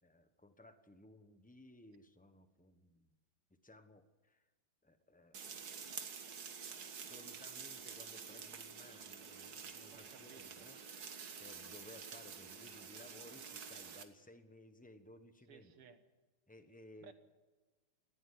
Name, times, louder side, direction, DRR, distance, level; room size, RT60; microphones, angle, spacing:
voice 1, 0.0-3.2 3.5-4.5 4.8-5.9 6.2-6.5 6.9-10.8 11.4-15.7 16.5-17.1, left 1 dB, 10° left, 9 dB, 0.6 m, -59 dB
sound 1, 5.3-14.0, right 6 dB, 50° right, 1.7 m, -49 dB
voice 2, 9.9-10.7 15.5-16.0 17.0-17.1, right 6 dB, 90° right, 9 dB, 2.3 m, -59 dB
19.0 x 14.0 x 9.8 m, 1.3 s
omnidirectional pair, 2.4 m